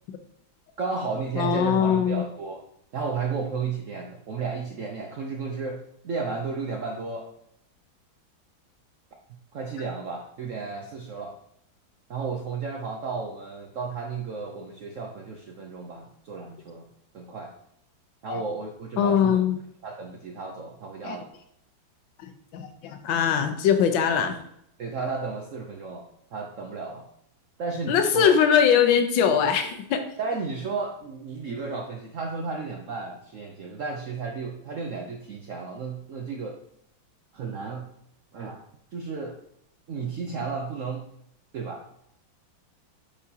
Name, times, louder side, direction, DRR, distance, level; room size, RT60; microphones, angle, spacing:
voice 1, 0.8-2.6 2.9-7.3 9.5-11.4 12.1-16.9 17.1-17.5 18.2-19.4 19.8-21.3 24.1-24.3 24.8-27.0 27.6-28.3 30.2-36.6 37.3-37.9 38.3-38.6 38.9-39.4 39.9-41.1 41.5-41.8, right 4 dB, 75° right, 1 dB, 0.7 m, -33 dB
voice 2, 1.4-2.2 18.3-18.4 19.0-19.6 21.0-21.2 22.5-24.4 27.9-30.0, left 8 dB, 80° left, 6 dB, 1.5 m, -21 dB
8.5 x 4.1 x 2.8 m, 0.74 s
omnidirectional pair, 2.1 m